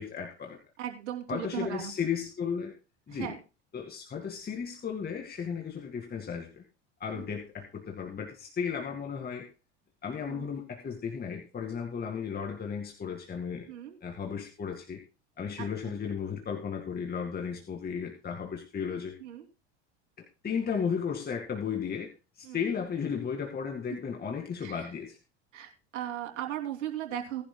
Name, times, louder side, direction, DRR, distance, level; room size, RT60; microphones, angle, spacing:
voice 1, 0.0-0.6 1.3-2.7 3.1-3.3 3.7-6.6 7.0-9.5 10.0-13.7 14.0-15.0 15.4-19.2 20.2-25.2, left 6 dB, 25° left, 3 dB, 2.1 m, -34 dB
voice 2, 0.8-1.9 3.1-3.4 7.1-7.3 10.3-10.5 13.7-14.0 15.6-15.9 19.2-19.4 22.4-22.7 24.6-24.9 25.5-27.4, right 11 dB, 80° right, 4 dB, 2.9 m, -37 dB
18.5 x 11.0 x 2.2 m, 0.32 s
hypercardioid pair, 90°, 35 cm